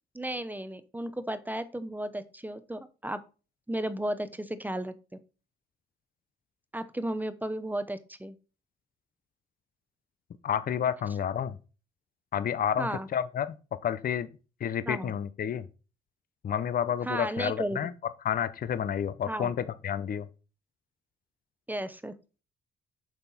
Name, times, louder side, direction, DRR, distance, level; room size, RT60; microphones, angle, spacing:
voice 1, 0.1-3.2 3.7-4.9 6.7-8.3 12.8-13.1 14.9-15.1 17.1-17.8 19.3-19.5 21.7-22.1, right 1 dB, 10° right, 0.8 m, -34 dB
voice 2, 10.4-11.6 12.3-13.5 13.8-14.3 14.6-15.7 16.4-17.9 18.2-20.3, left 9 dB, 45° left, 0.6 m, -30 dB
6.9 x 5.8 x 4.1 m
cardioid pair, 90°, 20 cm